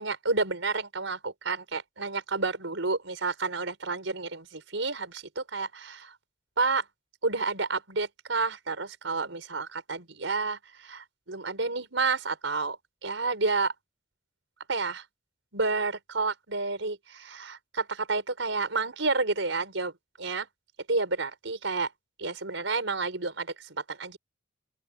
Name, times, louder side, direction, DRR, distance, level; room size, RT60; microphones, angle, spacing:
voice 1, 0.0-6.1 6.6-6.8 7.2-12.8 13.0-13.7 14.7-15.0 15.5-19.9 20.2-20.5 20.9-21.9 22.2-24.2, right 3 dB, 85° right, 4.7 m, -30 dB
open air
head